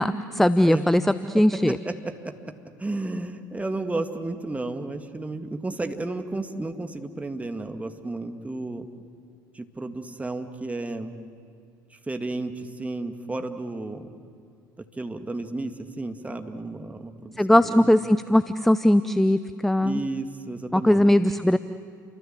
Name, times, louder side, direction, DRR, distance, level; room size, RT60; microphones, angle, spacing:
voice 1, 0.0-1.8 17.4-20.0 20.7-21.6, left 1 dB, ahead, 13 dB, 0.7 m, -20 dB
voice 2, 2.2-2.5 2.8-8.9 9.5-11.2 11.9-14.1 14.8-17.9 19.8-21.1, right 2 dB, 15° right, 6 dB, 2.2 m, -33 dB
30.0 x 24.5 x 7.7 m, 2.2 s
figure-of-eight pair, 65°, 11 cm